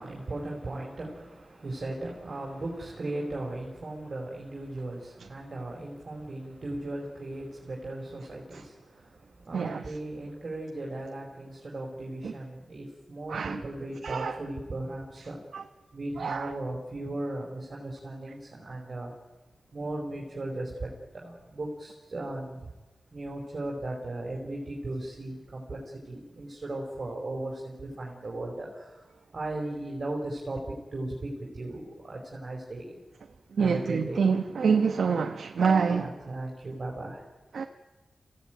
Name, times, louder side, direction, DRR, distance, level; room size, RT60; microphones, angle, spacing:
voice 1, 0.0-15.4 15.9-19.1 19.7-22.7 23.1-25.8 26.0-30.6 30.9-33.0 33.6-34.3 35.9-37.3, right 2 dB, 45° right, -2 dB, 5.1 m, -37 dB
voice 2, 9.5-9.8 12.2-12.3 13.3-13.6 14.0-14.4 15.5-15.6 16.2-16.5 33.6-36.1 37.5-37.7, right 5 dB, 85° right, 6 dB, 1.1 m, -26 dB
27.5 x 16.5 x 9.3 m, 1.2 s
wide cardioid pair, 90°, 0 cm